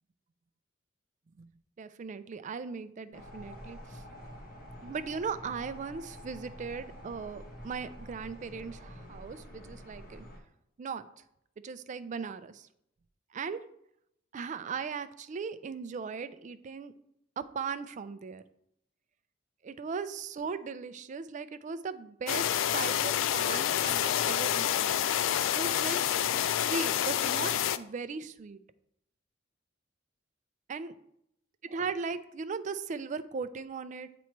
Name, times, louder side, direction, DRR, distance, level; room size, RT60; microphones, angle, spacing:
voice 1, 1.8-4.0 4.8-10.3 10.8-11.1 11.6-12.7 13.3-13.6 14.3-16.9 17.4-18.4 19.6-24.9 25.4-28.6 30.7-30.9 31.7-34.1, right 5 dB, 40° right, 12 dB, 0.4 m, -38 dB
sound 1, 3.1-10.4, equal, 50° left, 1.5 m, -47 dB
sound 2, 22.3-27.8, left 10 dB, 85° left, 0.3 m, -28 dB
8.3 x 3.1 x 4.5 m, 0.76 s
head